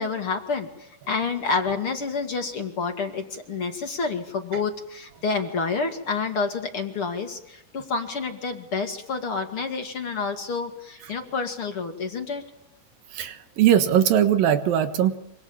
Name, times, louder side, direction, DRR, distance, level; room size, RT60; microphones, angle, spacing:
voice 1, 0.0-12.4, left 4 dB, 45° left, 5 dB, 2.5 m, -29 dB
voice 2, 13.1-15.2, right 10 dB, 80° right, 9 dB, 3.2 m, -20 dB
26.0 x 26.0 x 7.2 m, 0.82 s
omnidirectional pair, 4.0 m